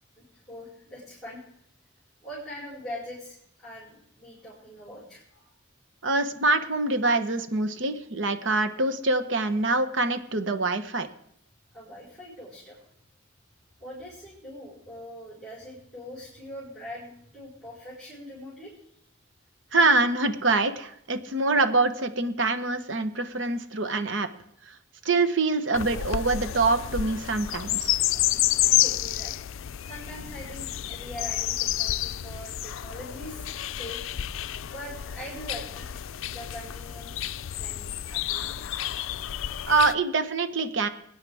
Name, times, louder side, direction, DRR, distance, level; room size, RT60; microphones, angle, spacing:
voice 1, 0.2-1.4 2.2-5.5 11.7-12.8 13.8-18.8 28.5-29.4 29.8-34.0 34.7-36.0 36.3-37.3 37.6-38.7, equal, ahead, -9 dB, 4.7 m, -42 dB
voice 2, 6.0-11.1 19.7-24.3 24.7-24.8 25.0-28.0 39.7-40.9, right 3 dB, 65° right, 9 dB, 1.0 m, -25 dB
sound 1, 25.7-39.9, left 13 dB, 80° left, 0.4 m, -30 dB
sound 2, 26.2-27.3 28.1-29.2 29.8-31.3, equal, 40° right, 4.9 m, -52 dB
23.0 x 9.7 x 3.5 m, 0.72 s
head